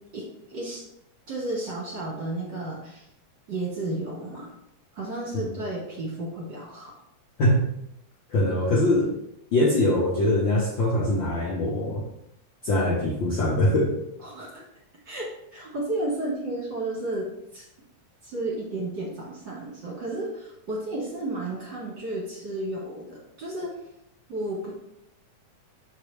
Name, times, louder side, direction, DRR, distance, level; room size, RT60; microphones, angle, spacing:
voice 1, 0.1-0.8 1.3-3.1 3.5-4.5 5.0-6.9 14.2-14.6 15.1-17.7 18.2-23.7 24.3-24.7, right 2 dB, 45° right, -4 dB, 1.7 m, -32 dB
voice 2, 8.3-9.1 9.5-12.0 12.6-14.0, left 1 dB, 60° left, -4 dB, 1.3 m, -22 dB
7.1 x 5.1 x 3.3 m, 0.78 s
omnidirectional pair, 3.3 m